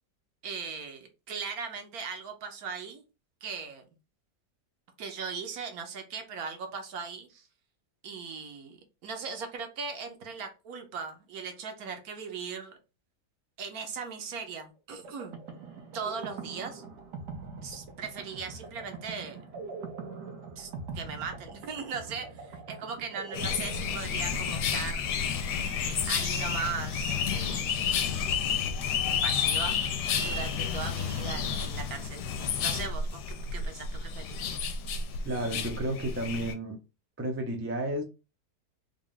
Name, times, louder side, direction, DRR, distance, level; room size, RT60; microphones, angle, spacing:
voice 1, 0.4-3.0 3.4-3.8 5.0-7.3 8.0-12.8 13.6-15.3 15.9-16.8 17.6-19.4 20.6-25.1 25.8-27.8 29.2-34.6, right 5 dB, 65° right, 5 dB, 1.2 m, -39 dB
sound 1, 15.0-25.6, right 4 dB, 85° right, 1.4 m, -43 dB
sound 2, 23.3-36.5, left 6 dB, 90° left, 1.2 m, -31 dB
voice 2, 35.3-36.8 37.2-38.0, right 1 dB, 15° right, 2 dB, 0.4 m, -32 dB
3.6 x 2.4 x 3.7 m, 0.29 s
omnidirectional pair, 1.7 m